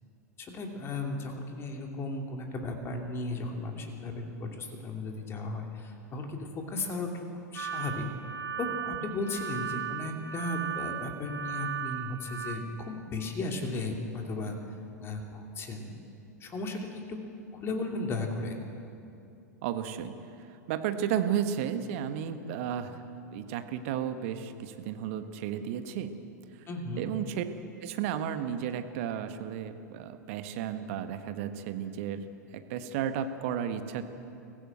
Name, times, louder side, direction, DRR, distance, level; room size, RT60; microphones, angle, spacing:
voice 1, 0.4-7.3 7.5-8.1 8.6-14.5 15.0-15.9 16.4-17.2 17.5-18.6 26.7-27.1, left 2 dB, 25° left, 3 dB, 2.7 m, -35 dB
sound 1, 7.5-12.5, right 9 dB, 85° right, 2.0 m, -36 dB
voice 2, 19.6-20.1 20.7-23.0 23.3-26.1 27.0-27.4 27.8-32.2 32.5-34.0, right 9 dB, 50° right, 9 dB, 1.4 m, -33 dB
23.5 x 15.5 x 8.0 m, 2.7 s
figure-of-eight pair, 90°, 9 cm